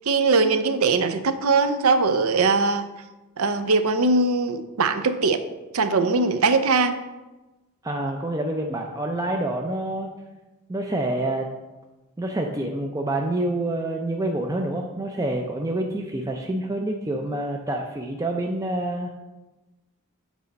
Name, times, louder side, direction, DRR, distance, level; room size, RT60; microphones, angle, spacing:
voice 1, 0.1-2.8 3.4-5.4 5.7-7.0, right 3 dB, 75° right, 10 dB, 0.6 m, -21 dB
voice 2, 7.8-10.1 10.7-11.5 12.2-19.1, right 1 dB, 15° right, 1 dB, 0.5 m, -27 dB
8.2 x 4.1 x 5.2 m, 1.1 s
head